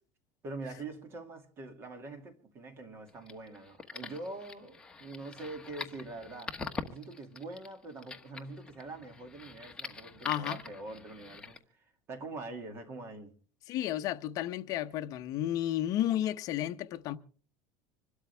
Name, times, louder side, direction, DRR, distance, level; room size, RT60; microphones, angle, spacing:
voice 1, 0.4-6.6 6.9-13.3, right 2 dB, 30° right, 2.3 m, -44 dB
sound 1, 3.1-11.6, left 4 dB, 10° left, 1.2 m, -44 dB
voice 2, 10.2-10.6 13.7-17.2, left 12 dB, 45° left, 0.8 m, -32 dB
26.0 x 12.5 x 3.4 m
cardioid pair, 160°, 9 cm